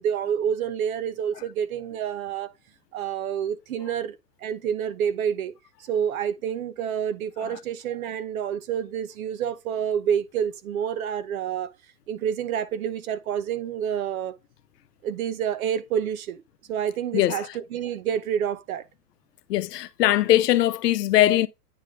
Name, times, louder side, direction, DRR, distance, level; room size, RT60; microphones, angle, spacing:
voice 1, 0.0-2.5 2.9-4.2 4.4-5.5 5.8-11.7 12.1-14.3 15.0-16.4 16.7-18.9, right 8 dB, 60° right, 1.1 m, -28 dB
voice 2, 17.1-17.5 19.5-21.5, left 14 dB, 75° left, 0.9 m, -20 dB
9.8 x 3.4 x 3.7 m
supercardioid pair, 165°, 49 cm